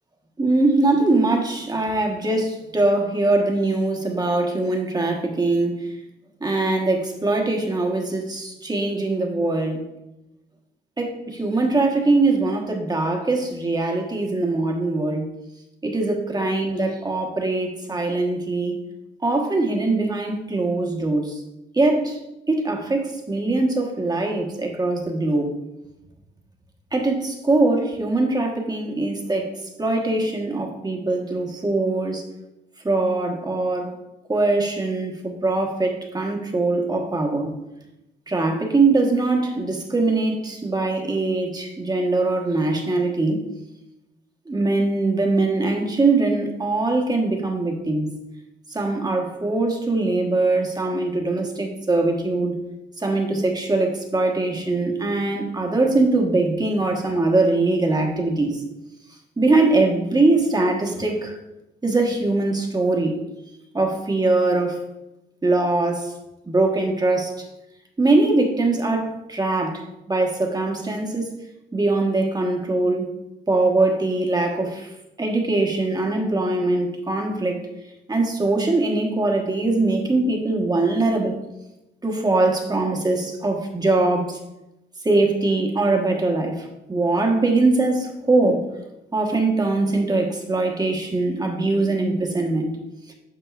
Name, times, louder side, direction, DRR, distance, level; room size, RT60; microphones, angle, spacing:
voice 1, 0.4-5.9 6.4-9.8 11.0-15.3 15.8-18.8 19.2-21.4 21.7-22.2 22.5-25.5 26.9-29.5 29.8-32.2 32.8-34.0 34.3-37.5 38.3-43.4 44.5-48.1 48.7-52.6 53.0-58.6 59.4-61.4 61.8-63.1 63.7-64.8 65.4-66.1 66.5-67.3 68.0-71.3 71.7-73.1 73.5-74.9 75.2-77.6 78.1-81.4 82.0-84.4 85.0-88.6 89.1-92.7, right 2 dB, 20° right, 2 dB, 1.3 m, -22 dB
9.0 x 5.9 x 2.5 m, 0.93 s
cardioid pair, 90°, 20 cm